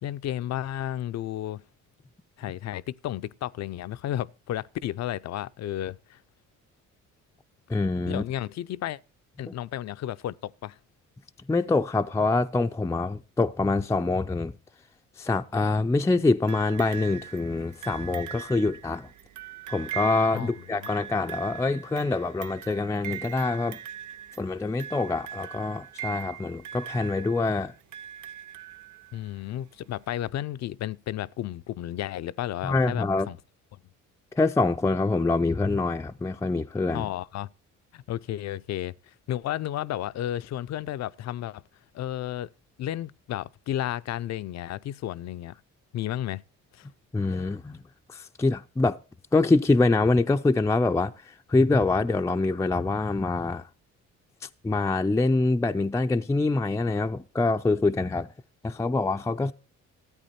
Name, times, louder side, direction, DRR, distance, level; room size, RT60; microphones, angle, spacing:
voice 1, 0.0-1.6 2.4-6.2 8.0-9.0 9.4-10.8 20.3-20.9 29.1-33.4 33.7-33.8 36.9-37.5 37.9-41.6 41.9-42.5 42.8-45.5 45.9-46.4 46.7-46.9 59.4-59.5, left 12 dB, 60° left, 0.5 m, -33 dB
voice 2, 7.7-8.2 9.5-9.6 11.5-14.5 15.2-19.1 19.7-23.8 24.4-27.7 32.6-33.3 34.3-37.1 47.1-47.8 48.1-49.0 49.3-53.7 54.6-58.3 58.6-59.5, left 3 dB, 10° left, 0.4 m, -25 dB
sound 1, 16.5-29.3 30.3-30.4, right 10 dB, 75° right, 0.6 m, -41 dB
13.5 x 8.6 x 4.3 m
cardioid pair, 90°, 30 cm